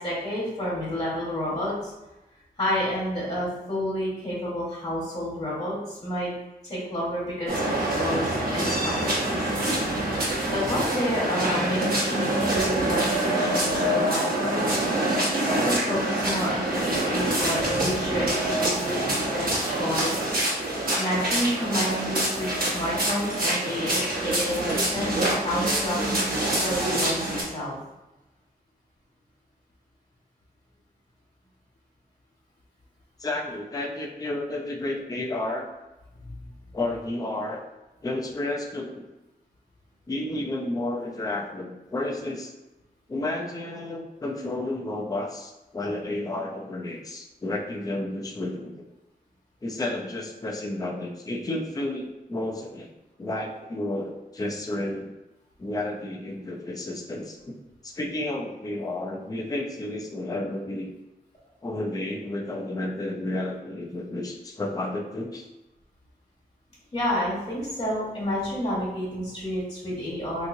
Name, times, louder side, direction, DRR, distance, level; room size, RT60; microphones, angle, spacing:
voice 1, 0.0-1.9 2.6-6.3 6.6-9.8 10.5-14.7 15.3-20.3 20.9-26.0 26.5-27.7 36.2-36.3 66.9-70.5, equal, 40° left, -7 dB, 1.3 m, -30 dB
sound 1, 7.5-27.4, right 1 dB, 65° right, 1.0 m, -26 dB
voice 2, 33.2-35.7 36.7-37.6 38.0-39.0 40.1-42.5 43.1-48.7 49.6-52.9 53.2-55.1 55.6-57.6 57.8-60.9 61.6-65.5, left 2 dB, 20° left, 0 dB, 0.5 m, -31 dB
3.6 x 2.9 x 2.6 m, 1.0 s
wide cardioid pair, 120°, 16 cm